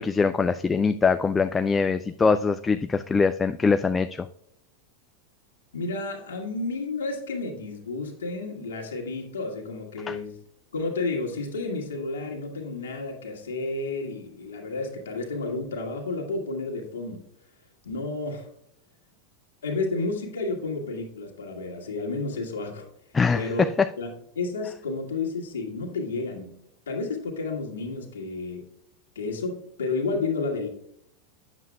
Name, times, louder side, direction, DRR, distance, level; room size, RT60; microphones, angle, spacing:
voice 1, 0.0-4.3 10.1-10.2 23.1-23.9, left 5 dB, 15° left, 11 dB, 0.3 m, -23 dB
voice 2, 5.7-10.3 10.7-17.2 17.8-18.5 19.6-22.9 23.3-23.7 24.0-26.6 26.9-28.7 29.1-30.7, left 3 dB, 70° left, 1 dB, 1.7 m, -31 dB
9.0 x 7.4 x 2.3 m, 0.71 s
figure-of-eight pair, 90°, 0 cm